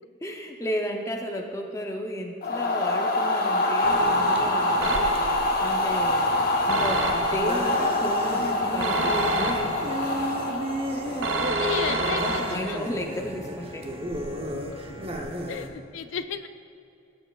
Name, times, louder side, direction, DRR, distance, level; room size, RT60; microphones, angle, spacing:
voice 1, 0.2-5.1 5.6-6.3 6.7-9.6 12.1-13.9, equal, 15° left, 2 dB, 0.5 m, -33 dB
sound 1, 2.4-11.5, left 1 dB, 50° left, 0.9 m, -25 dB
sound 2, 3.8-15.7, equal, 30° right, 0.7 m, -34 dB
sound 3, 4.8-5.5 6.7-7.6 8.8-10.0 11.2-12.9, right 2 dB, 80° right, 0.8 m, -28 dB
voice 2, 11.4-12.8 15.5-16.5, left 6 dB, 70° left, 10 dB, 0.3 m, -33 dB
15.5 x 7.9 x 2.3 m, 2.6 s
head